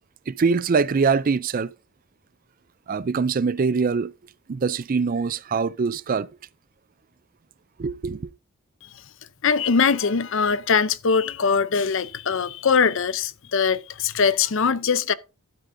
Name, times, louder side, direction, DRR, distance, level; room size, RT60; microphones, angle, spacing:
voice 1, 0.3-1.7 2.9-4.1 4.5-6.3 7.8-8.3, right 5 dB, 40° right, 0.4 m, -23 dB
voice 2, 9.4-15.1, left 5 dB, 60° left, 0.6 m, -22 dB
12.0 x 8.9 x 2.6 m
head